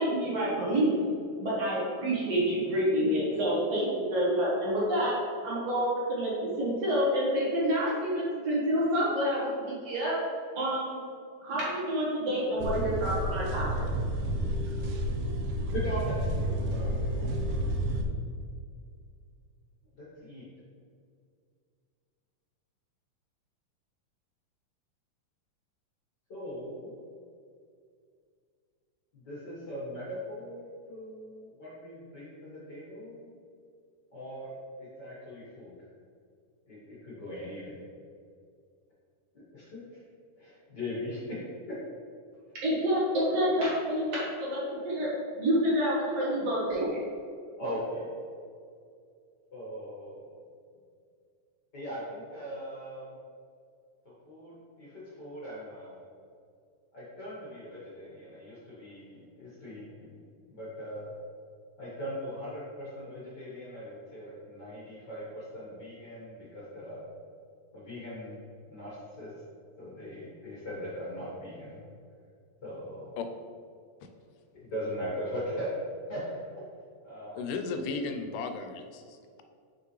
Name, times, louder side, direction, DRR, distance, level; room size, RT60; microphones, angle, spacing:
voice 1, 0.0-5.1 5.4-10.1 10.6-11.0 11.4-13.7 42.6-45.1 45.4-47.0, equal, 55° right, -7 dB, 2.4 m, -28 dB
sound 1, 12.6-18.0, right 1 dB, 80° right, 1.9 m, -30 dB
voice 2, 15.7-17.6 20.0-20.4 26.3-27.0 29.1-33.3 34.1-34.5 34.8-35.8 36.7-37.8 39.5-40.0 40.3-41.4 47.6-48.1 49.5-50.3 51.7-53.1 54.3-56.0 56.9-60.2 60.5-61.1 61.8-67.0 67.7-68.4 68.7-69.3 69.8-71.8 72.6-73.1 74.5-75.7 76.1-76.2 77.0-77.4, equal, 45° left, -8 dB, 1.5 m, -40 dB
voice 3, 77.3-79.4, left 4 dB, 85° left, 6 dB, 2.1 m, -35 dB
5.9 x 5.6 x 3.2 m, 2.3 s
omnidirectional pair, 3.7 m